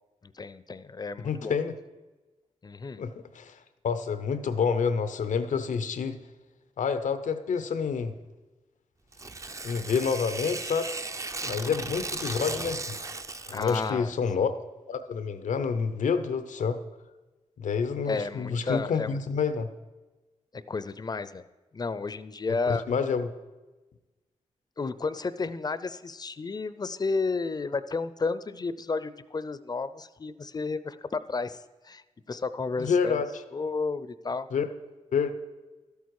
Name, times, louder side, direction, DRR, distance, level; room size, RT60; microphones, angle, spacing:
voice 1, 0.2-1.5 2.6-3.0 11.4-11.8 13.5-14.1 18.1-19.1 20.5-21.4 21.7-22.8 24.8-32.0 32.3-33.2 33.5-34.5, left 4 dB, 30° left, 14 dB, 0.5 m, -32 dB
voice 2, 1.2-1.7 3.0-3.6 3.8-6.2 6.8-8.1 9.6-10.9 11.5-13.0 13.5-14.5 14.9-16.8 17.6-19.7 22.7-23.3 32.8-33.4 34.5-34.6 35.1-35.3, left 6 dB, 90° left, 11 dB, 0.7 m, -28 dB
Tearing, 9.1-13.9, right 3 dB, 25° right, 0.5 m, -36 dB
12.5 x 8.3 x 4.7 m, 1.2 s
cardioid pair, 85°, 13 cm